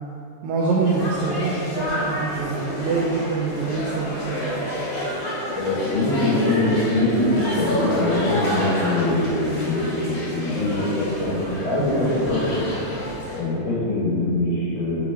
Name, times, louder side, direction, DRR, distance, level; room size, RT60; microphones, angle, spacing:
voice 1, 0.4-4.3 4.6-4.7, right 4 dB, 85° right, -3 dB, 1.6 m, -25 dB
sound 1, 0.8-13.4, equal, 45° left, 1.9 m, -29 dB
voice 2, 5.6-12.6 13.3-15.1, left 1 dB, 70° left, -8 dB, 2.9 m, -23 dB
6.1 x 5.1 x 3.5 m, 2.7 s
omnidirectional pair, 3.9 m